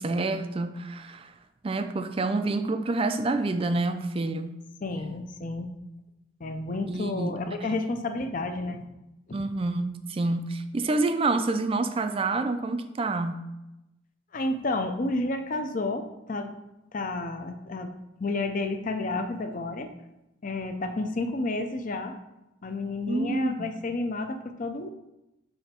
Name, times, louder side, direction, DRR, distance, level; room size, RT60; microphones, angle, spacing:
voice 1, 0.0-1.3 1.6-4.5 6.9-7.3 7.7-7.8 9.3-13.4 23.1-23.7, right 2 dB, 25° right, 9 dB, 0.3 m, -28 dB
voice 2, 4.8-5.7 6.4-8.8 14.3-16.0 16.3-16.6 16.9-17.9 18.2-19.9 20.4-22.1 22.6-24.9, left 2 dB, 40° left, 6 dB, 0.5 m, -30 dB
7.0 x 3.3 x 4.3 m, 0.94 s
head